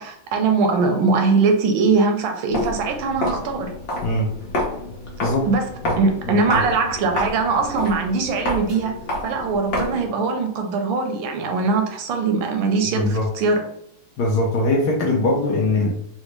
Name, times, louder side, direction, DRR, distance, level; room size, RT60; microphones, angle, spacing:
voice 1, 0.0-3.7 5.5-5.7 6.0-8.9 9.2-13.6, right 4 dB, 80° right, 4 dB, 1.3 m, -21 dB
Walk footsteps, 2.5-10.1, left 1 dB, 55° left, 1.3 m, -29 dB
voice 2, 4.0-4.3 5.2-5.5 5.8-6.0 6.2-6.7 12.9-13.3 14.2-15.9, left 2 dB, 70° left, -2 dB, 1.0 m, -21 dB
4.0 x 2.0 x 3.0 m, 0.75 s
omnidirectional pair, 2.2 m